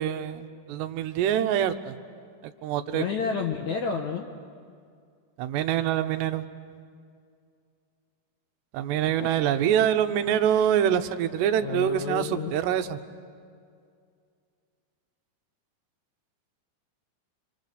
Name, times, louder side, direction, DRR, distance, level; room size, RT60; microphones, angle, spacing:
voice 1, 0.0-1.9 2.4-3.0 5.4-6.4 8.7-13.0, right 10 dB, 85° right, 9 dB, 3.0 m, -25 dB
voice 2, 2.9-4.3 9.2-9.3 11.6-12.6, left 5 dB, 70° left, 2 dB, 1.8 m, -30 dB
26.5 x 26.0 x 6.7 m, 2.3 s
omnidirectional pair, 4.8 m